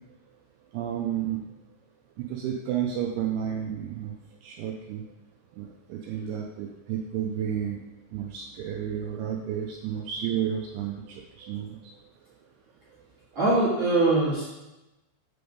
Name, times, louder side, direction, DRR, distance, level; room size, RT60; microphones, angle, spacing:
voice 1, 0.7-1.4 2.2-4.1 4.4-5.0 5.6-7.8 8.1-11.8, right 9 dB, 80° right, 0 dB, 2.3 m, -31 dB
voice 2, 13.3-14.4, right 2 dB, 50° right, -9 dB, 1.5 m, -22 dB
7.8 x 3.4 x 5.2 m, 1.0 s
omnidirectional pair, 5.1 m